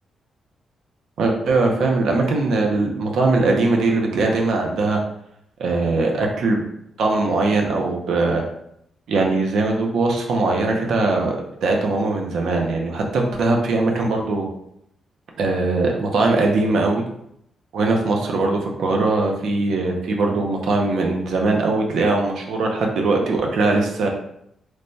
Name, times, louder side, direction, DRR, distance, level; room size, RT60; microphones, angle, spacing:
voice 1, 1.2-5.0 5.6-6.6 7.0-8.4 9.1-14.5 15.4-17.0 17.7-24.1, right 3 dB, 65° right, 1 dB, 0.5 m, -20 dB
3.2 x 2.1 x 2.6 m, 0.75 s
wide cardioid pair, 180°, 0 cm